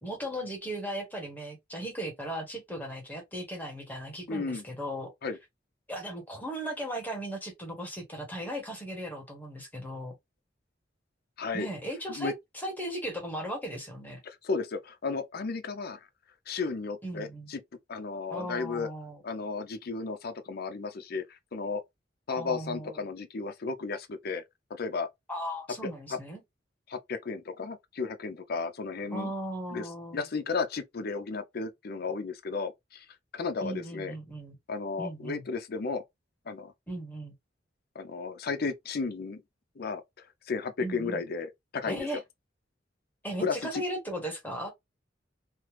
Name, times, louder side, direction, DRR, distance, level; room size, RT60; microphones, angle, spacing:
voice 1, 0.0-5.1 5.9-10.2 11.5-14.2 17.0-17.5 18.3-19.2 22.3-23.0 25.3-26.4 29.1-30.2 33.6-34.5 35.0-35.4 36.9-37.3 40.8-41.2 41.8-42.2 43.2-44.7, right 1 dB, 10° left, 1.2 m, -37 dB
voice 2, 4.3-4.6 5.2-5.4 11.4-11.7 12.1-12.3 14.2-16.1 16.5-17.6 17.9-18.9 19.2-21.8 22.3-24.4 24.7-25.1 26.1-26.2 26.9-29.3 29.7-33.1 33.3-34.1 34.7-36.0 36.5-36.7 37.9-39.4 39.8-42.1 43.4-43.8, left 4 dB, 55° left, 0.5 m, -34 dB
3.3 x 2.0 x 3.0 m
head